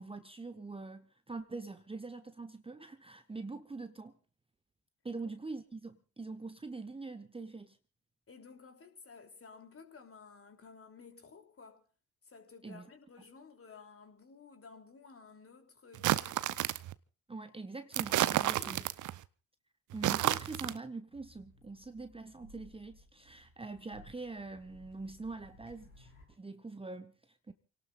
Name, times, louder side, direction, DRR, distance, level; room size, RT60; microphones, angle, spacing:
voice 1, 0.0-4.1 5.0-7.8 12.6-12.9 17.3-18.8 19.9-27.5, right 3 dB, 15° right, 1.1 m, -44 dB
voice 2, 8.3-11.8 12.2-16.7 18.3-18.9, left 5 dB, 35° left, 3.1 m, -54 dB
sound 1, 15.9-16.9 17.9-19.2 19.9-20.8, right 14 dB, 45° right, 0.8 m, -31 dB
sound 2, 21.1-26.3, left 1 dB, 80° left, 6.8 m, -59 dB
29.0 x 18.5 x 2.5 m
figure-of-eight pair, 45°, 41 cm